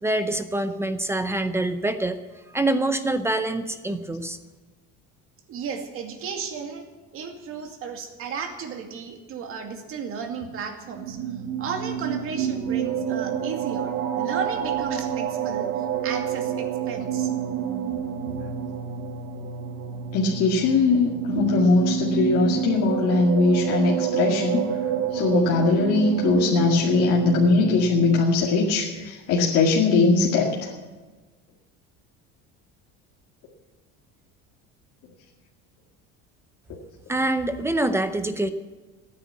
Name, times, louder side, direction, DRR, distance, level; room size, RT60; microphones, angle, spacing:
voice 1, 0.0-2.2 2.5-4.4 37.1-38.5, right 2 dB, 10° right, 10 dB, 0.6 m, -25 dB
voice 2, 5.5-6.8 7.1-11.2 11.6-15.7 16.0-17.3, right 6 dB, 45° right, 4 dB, 2.4 m, -34 dB
sound 1, 10.9-28.2, right 9 dB, 60° right, 1.5 m, -28 dB
voice 3, 20.1-24.6 25.1-30.7, left 3 dB, 50° left, -3 dB, 2.1 m, -21 dB
15.5 x 9.7 x 8.4 m, 1.3 s
cardioid pair, 165°, 31 cm